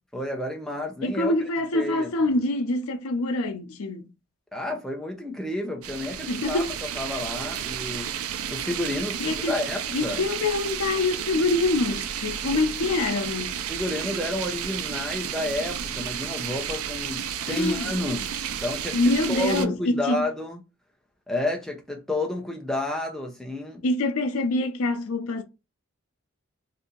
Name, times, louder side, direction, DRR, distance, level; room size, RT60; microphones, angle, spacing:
voice 1, 0.1-1.3 1.7-2.3 4.5-6.6 6.9-8.1 8.5-10.2 12.5-12.6 13.7-19.0 19.3-20.6 21.3-23.8, left 1 dB, ahead, 0.6 m, -30 dB
voice 2, 1.0-4.1 6.3-6.7 9.2-9.6 9.9-13.6 17.5-17.9 18.9-20.3 23.8-25.4, left 2 dB, 85° left, 0.6 m, -25 dB
sound 1, 5.8-19.7, right 9 dB, 85° right, 0.4 m, -32 dB
2.8 x 2.6 x 3.7 m
head